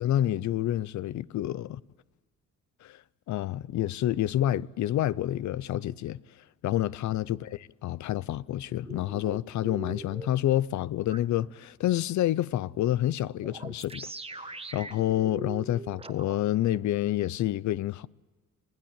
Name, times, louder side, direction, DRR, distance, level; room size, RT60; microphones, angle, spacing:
voice 1, 0.0-1.8 2.8-3.0 3.3-6.2 6.6-14.1 14.4-18.1, left 13 dB, 70° left, 0.7 m, -28 dB
sound 1, 8.8-10.3 11.1-11.2 13.4-16.4, right 3 dB, 20° right, 1.5 m, -41 dB
26.5 x 17.0 x 9.0 m
cardioid pair, 90°, 30 cm